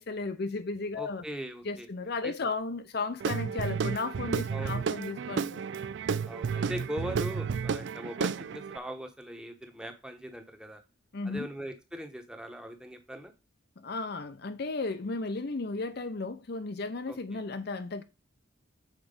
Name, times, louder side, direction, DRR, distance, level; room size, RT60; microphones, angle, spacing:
voice 1, 0.0-1.2 1.6-5.6 11.1-11.5 13.8-18.0, left 3 dB, 50° left, 0.6 m, -34 dB
voice 2, 1.0-1.9 2.2-2.3 4.5-4.8 6.3-10.8 11.2-13.3 17.1-17.4, equal, 5° right, 1.0 m, -40 dB
Guitar / Drum, 3.2-8.8, right 6 dB, 60° right, 0.3 m, -32 dB
7.3 x 4.5 x 5.2 m
head